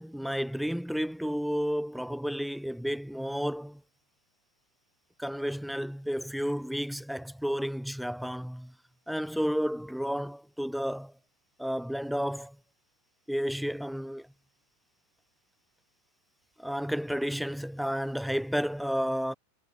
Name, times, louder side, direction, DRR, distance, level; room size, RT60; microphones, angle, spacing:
voice 1, 0.0-3.8 5.2-8.7 9.1-11.1 11.6-12.6 13.3-14.3 16.6-19.3, equal, ahead, 3.3 m, -31 dB
figure-of-eight pair, 90°, 0 cm